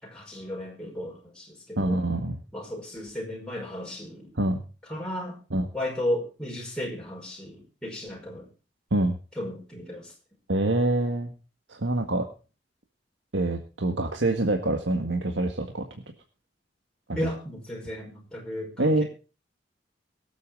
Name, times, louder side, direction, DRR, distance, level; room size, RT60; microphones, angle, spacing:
voice 1, 0.0-2.0 2.5-4.3 4.8-5.4 5.7-8.5 9.4-10.1 17.2-19.0, left 1 dB, 5° left, -2 dB, 5.1 m, -34 dB
voice 2, 1.8-2.4 4.4-4.6 5.5-5.7 8.9-9.2 10.5-11.3 11.7-12.3 13.3-15.8 18.8-19.0, right 2 dB, 80° right, 4 dB, 1.8 m, -25 dB
23.5 x 8.4 x 3.8 m, 0.35 s
head